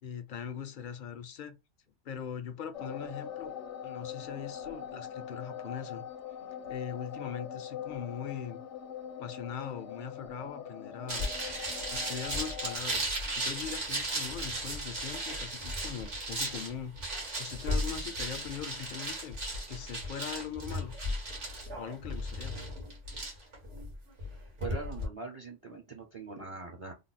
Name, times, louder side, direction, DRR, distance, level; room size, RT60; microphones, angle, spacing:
voice 1, 0.0-1.6 2.0-3.5 3.8-6.1 6.7-8.6 9.2-11.3 11.9-13.1 13.4-16.9 17.4-19.4 19.7-20.9 21.7-22.6, left 8 dB, 55° left, 0.6 m, -41 dB
sound 1, 2.7-12.8, left 8 dB, 75° left, 0.9 m, -42 dB
sound 2, 11.1-25.1, right 1 dB, 75° right, 1.9 m, -36 dB
voice 2, 24.6-26.9, right 4 dB, 35° right, 0.6 m, -42 dB
3.4 x 2.1 x 4.0 m
omnidirectional pair, 1.2 m